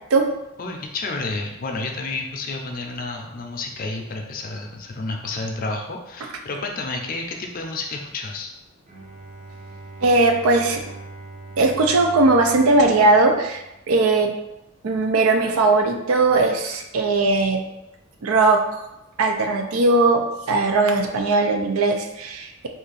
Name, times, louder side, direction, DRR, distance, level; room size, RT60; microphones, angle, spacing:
voice 1, 0.6-8.5, left 3 dB, 40° left, 2 dB, 0.5 m, -30 dB
Bowed string instrument, 8.9-14.1, right 2 dB, 30° right, 0.5 m, -41 dB
voice 2, 10.0-10.8 11.6-14.3 14.8-17.6 18.2-18.8 19.2-22.7, right 3 dB, 85° right, 4 dB, 0.5 m, -19 dB
2.8 x 2.5 x 3.9 m, 0.91 s
head